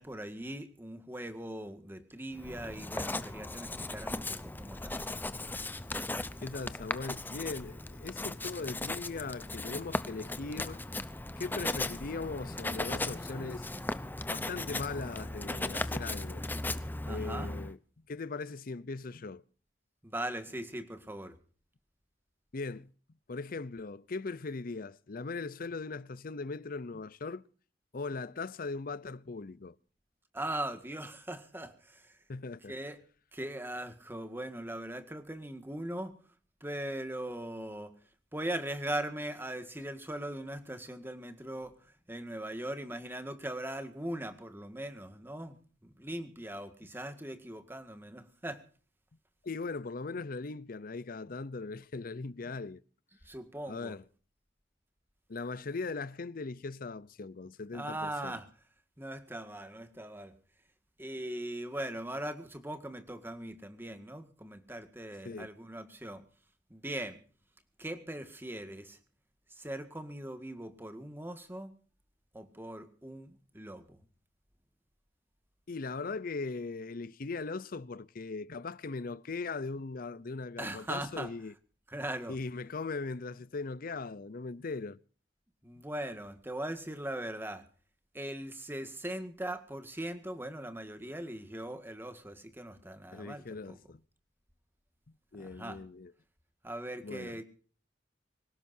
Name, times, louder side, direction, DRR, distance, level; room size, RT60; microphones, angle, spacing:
voice 1, 0.0-5.3 17.1-17.5 20.0-21.3 30.3-32.1 32.7-33.0 33.3-36.1 36.6-37.9 38.3-41.7 42.1-45.6 45.8-48.6 53.3-54.0 57.7-58.4 59.0-60.3 61.0-66.2 66.7-67.2 67.8-69.0 69.6-71.7 72.3-74.0 80.6-81.3 81.9-82.4 85.6-87.6 88.1-93.8 95.4-95.8 96.6-97.4, right 1 dB, 15° right, 1.8 m, -40 dB
Writing, 2.4-17.7, left 2 dB, 10° left, 0.7 m, -37 dB
voice 2, 6.4-10.8 11.4-13.7 14.3-16.4 16.8-17.8 18.1-19.4 22.5-22.9 23.3-27.4 27.9-29.8 32.3-32.8 49.4-52.8 53.7-54.0 55.3-58.4 65.2-65.5 75.7-81.5 82.3-85.0 93.1-94.0 95.3-96.1 97.0-97.4, left 3 dB, 55° left, 0.7 m, -39 dB
25.5 x 17.0 x 2.7 m
head